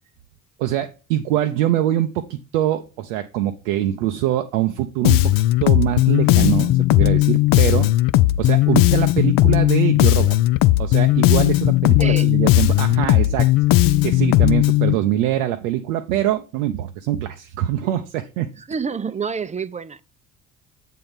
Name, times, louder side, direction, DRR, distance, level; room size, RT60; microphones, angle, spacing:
voice 1, 0.6-7.9 8.4-10.4 10.8-13.5 14.0-18.5, right 12 dB, 75° right, 0.6 m, -23 dB
Bass guitar, 5.0-14.9, left 17 dB, 55° left, 0.5 m, -16 dB
voice 2, 12.0-12.6 18.6-20.0, right 5 dB, 20° right, 0.5 m, -28 dB
7.6 x 3.7 x 5.6 m
hypercardioid pair, 55°, 40 cm